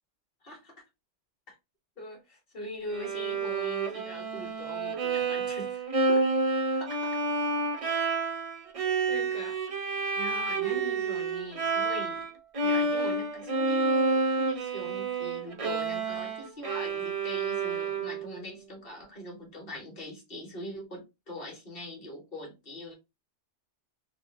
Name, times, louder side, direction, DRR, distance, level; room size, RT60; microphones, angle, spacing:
voice 1, 0.4-0.7 1.5-1.6 2.0-5.7 6.1-6.2 6.7-7.2 9.1-9.6 10.1-12.3 12.6-22.9, left 1 dB, 55° left, 1.7 m, -42 dB
Bowed string instrument, 2.9-12.3 12.5-18.4, right 3 dB, 40° right, 0.6 m, -29 dB
3.7 x 2.5 x 3.1 m
omnidirectional pair, 1.2 m